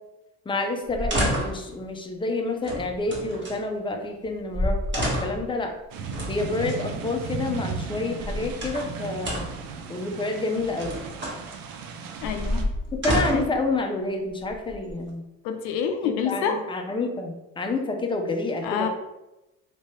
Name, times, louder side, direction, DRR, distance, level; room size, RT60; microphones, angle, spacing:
voice 1, 0.5-5.7 6.3-9.4 9.9-10.9 13.0-15.2 16.0-18.9, left 2 dB, 15° left, 3 dB, 0.6 m, -28 dB
sound 1, 0.9-1.7 2.6-3.6 4.2-4.3 4.5-5.5 6.1-6.8 8.0-8.9 9.2-9.7 10.5-11.4 12.2-13.6 14.4-15.1, equal, 30° right, 1.4 m, -29 dB
sound 2, 5.9-12.6, right 5 dB, 70° right, 0.6 m, -36 dB
voice 2, 12.2-12.7 13.3-13.5 15.4-16.6 18.6-18.9, left 7 dB, 85° left, 6 dB, 0.5 m, -27 dB
3.4 x 2.7 x 3.2 m, 0.96 s
supercardioid pair, 70°, 35 cm